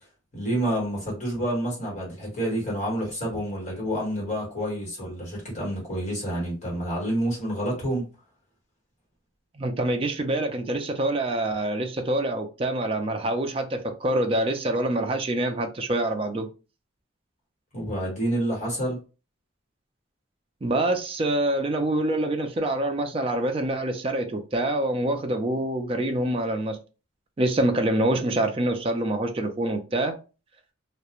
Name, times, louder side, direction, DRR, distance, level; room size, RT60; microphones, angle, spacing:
voice 1, 0.3-8.1 17.7-19.0, right 1 dB, 35° left, 1.3 m, -28 dB
voice 2, 9.6-16.5 20.6-26.8 27.4-30.1, right 1 dB, 25° right, 0.3 m, -26 dB
2.3 x 2.1 x 2.9 m
head